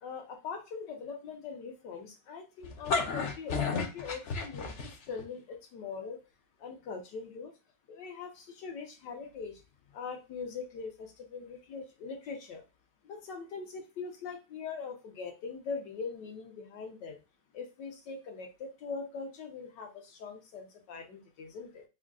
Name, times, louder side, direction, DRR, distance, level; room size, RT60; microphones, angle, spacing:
voice 1, 0.0-6.2 6.6-7.5 7.9-9.6 9.9-12.6 13.0-17.2 17.5-21.8, left 5 dB, 85° left, 2 dB, 1.6 m, -42 dB
sound 1, 2.6-5.2, left 4 dB, 60° left, 0.7 m, -32 dB
3.6 x 2.3 x 3.6 m, 0.29 s
omnidirectional pair, 1.8 m